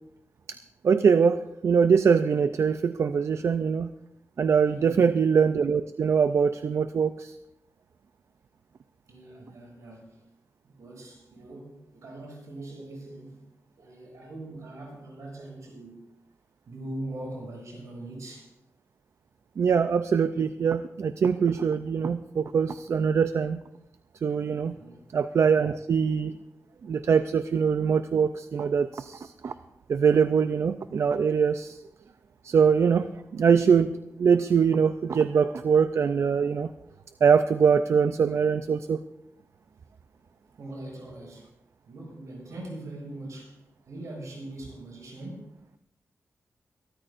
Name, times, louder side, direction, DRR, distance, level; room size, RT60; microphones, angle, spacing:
voice 1, 0.8-3.9 4.4-7.3 19.6-23.6 24.2-24.8 25.1-26.4 26.8-29.5 29.9-31.8 32.4-36.7 37.2-39.0, right 6 dB, 60° right, 11 dB, 0.4 m, -23 dB
voice 2, 4.7-5.1 9.1-10.2 10.6-13.5 13.8-16.1 16.7-18.5 24.7-25.0 40.6-41.5 41.9-45.6, right 1 dB, 75° right, -1 dB, 6.5 m, -41 dB
23.5 x 13.5 x 2.6 m, 0.85 s
wide cardioid pair, 165°, 5 cm